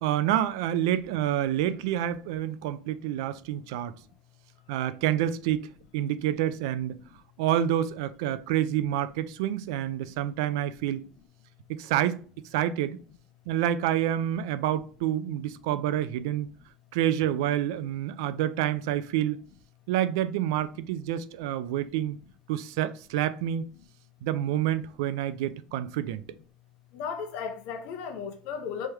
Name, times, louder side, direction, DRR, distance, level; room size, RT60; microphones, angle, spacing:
voice 1, 0.0-3.9 4.7-5.7 5.9-7.0 7.4-11.0 11.7-12.2 12.5-13.0 13.5-16.5 16.9-19.4 19.9-22.2 22.5-23.7 24.2-26.2, right 11 dB, 85° right, 0.3 m, -28 dB
voice 2, 26.9-28.9, left 6 dB, 55° left, 0.8 m, -35 dB
3.4 x 3.2 x 3.0 m
cardioid pair, 170°, 2 cm